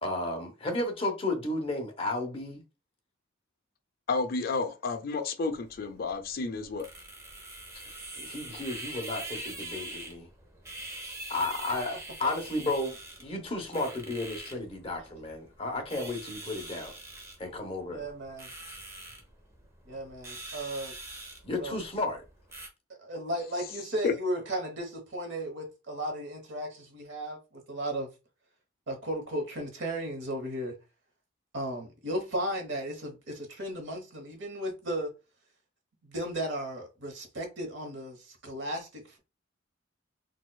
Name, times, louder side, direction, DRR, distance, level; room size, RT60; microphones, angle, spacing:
voice 1, 0.0-2.6 7.8-10.3 11.3-16.9 17.4-18.1 21.4-22.2, left 2 dB, 30° left, 0.8 m, -33 dB
voice 2, 4.1-6.9 24.0-24.1, left 4 dB, 50° left, 0.4 m, -31 dB
sound 1, 5.5-22.7, right 2 dB, 15° right, 0.7 m, -44 dB
voice 3, 17.9-18.5 19.9-20.9 21.5-21.7 22.9-28.1 28.9-30.7 31.5-35.1 36.0-39.2, right 1 dB, 65° right, 1.0 m, -35 dB
4.1 x 2.4 x 2.2 m
head